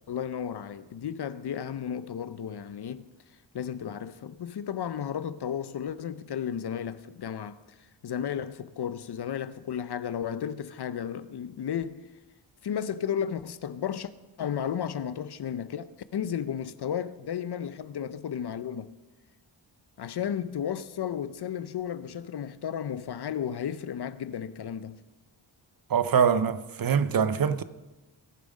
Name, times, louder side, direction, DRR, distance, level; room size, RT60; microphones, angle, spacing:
voice 1, 0.1-3.0 3.5-7.6 8.0-12.0 12.6-14.1 14.4-18.9 20.0-25.0, left 8 dB, 60° left, 0.7 m, -33 dB
voice 2, 25.9-27.6, right 7 dB, 50° right, 0.7 m, -24 dB
17.5 x 7.2 x 5.3 m
cardioid pair, 80°, 46 cm